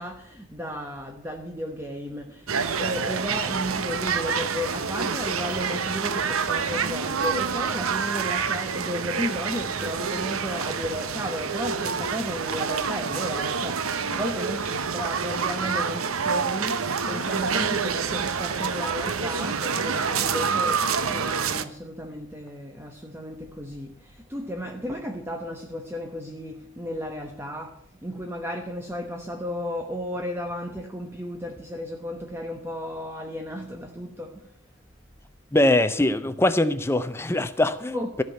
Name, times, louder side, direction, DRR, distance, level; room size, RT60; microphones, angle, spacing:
voice 1, 0.0-34.5 37.9-38.2, equal, 10° right, 0.9 m, -34 dB
sound 1, 2.5-21.7, right 6 dB, 90° right, 0.9 m, -27 dB
voice 2, 35.5-38.2, left 1 dB, 10° left, 0.6 m, -22 dB
14.5 x 5.9 x 9.2 m
head